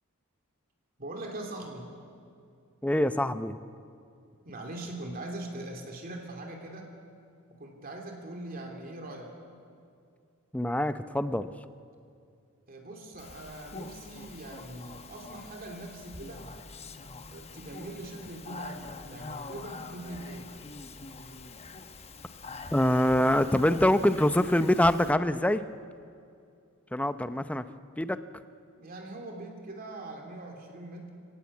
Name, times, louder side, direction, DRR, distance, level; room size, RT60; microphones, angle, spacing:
voice 1, 1.0-1.9 4.4-7.0 7.6-9.6 12.7-16.4 17.3-20.6 28.8-31.1, right 2 dB, 45° right, 1 dB, 2.9 m, -42 dB
voice 2, 2.8-3.6 10.5-11.5 22.7-25.6 26.9-27.7 28.0-28.2, left 1 dB, 5° left, 11 dB, 0.6 m, -25 dB
Speech, 13.2-25.1, left 3 dB, 30° left, 1.0 m, -45 dB
25.5 x 17.0 x 8.4 m, 2.4 s
head